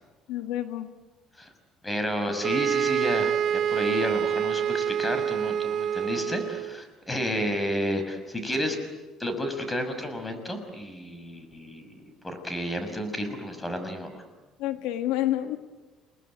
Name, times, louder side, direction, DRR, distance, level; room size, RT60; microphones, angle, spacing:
voice 1, 0.3-0.9 14.6-15.6, left 13 dB, 85° left, 8 dB, 1.5 m, -28 dB
voice 2, 1.8-8.8 9.2-14.2, equal, 15° left, 8 dB, 6.1 m, -31 dB
sound 1, 2.4-6.8, right 9 dB, 55° right, 0.8 m, -27 dB
29.5 x 20.0 x 9.3 m, 1.2 s
supercardioid pair, 95°, 0 cm